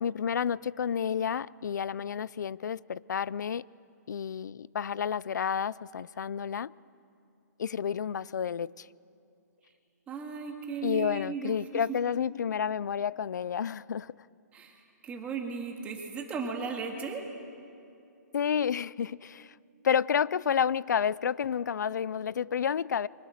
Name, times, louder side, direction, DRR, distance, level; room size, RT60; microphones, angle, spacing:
voice 1, 0.0-3.7 4.1-6.7 7.6-8.9 10.8-14.2 18.3-19.5 19.8-23.1, left 7 dB, 80° left, 0.5 m, -30 dB
voice 2, 10.1-11.8 14.5-17.2, right 5 dB, 15° right, 2.1 m, -36 dB
29.5 x 24.5 x 6.6 m
hypercardioid pair, 160°, 10 cm